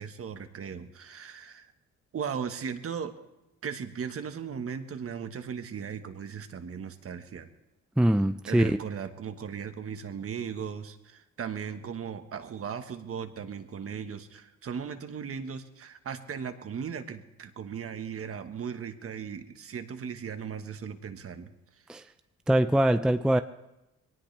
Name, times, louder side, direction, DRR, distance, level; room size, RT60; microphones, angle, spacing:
voice 1, 0.0-1.7 2.1-3.1 3.6-7.5 8.5-21.5, right 7 dB, 50° right, 1.4 m, -37 dB
voice 2, 8.0-8.8 21.9-22.0 22.5-23.4, right 1 dB, 5° right, 0.4 m, -23 dB
22.0 x 18.5 x 3.4 m
cardioid pair, 90°, 30 cm